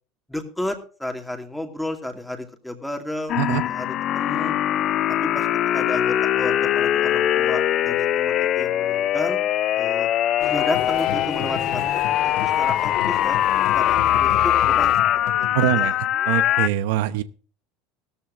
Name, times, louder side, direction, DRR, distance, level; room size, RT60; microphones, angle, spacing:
voice 1, 0.3-4.6 5.2-5.5 5.7-9.4 9.8-10.1 10.4-13.4 13.7-15.5 15.8-15.9, left 1 dB, ahead, 5 dB, 2.3 m, -32 dB
sound 1, 3.3-16.7, left 12 dB, 35° left, 0.6 m, -22 dB
sound 2, 10.4-14.9, left 8 dB, 50° left, 2.7 m, -32 dB
sound 3, 10.7-15.9, left 11 dB, 85° left, 2.8 m, -36 dB
voice 2, 15.5-16.0 16.3-17.2, right 14 dB, 75° right, 13 dB, 0.9 m, -23 dB
17.0 x 13.5 x 2.6 m, 0.40 s
supercardioid pair, 155°, 0 cm